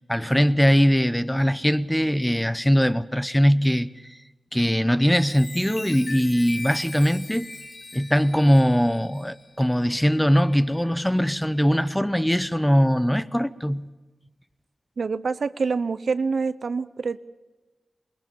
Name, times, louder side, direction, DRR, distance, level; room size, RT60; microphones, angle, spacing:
voice 1, 0.1-4.1 4.5-7.5 7.9-13.9, equal, 5° left, 0.8 m, -21 dB
Chime, 4.9-10.9 11.5-11.7, left 2 dB, 50° left, 3.5 m, -41 dB
voice 2, 15.0-17.2, right 4 dB, 65° right, 0.7 m, -26 dB
21.5 x 21.5 x 7.0 m
cardioid pair, 70°, 0 cm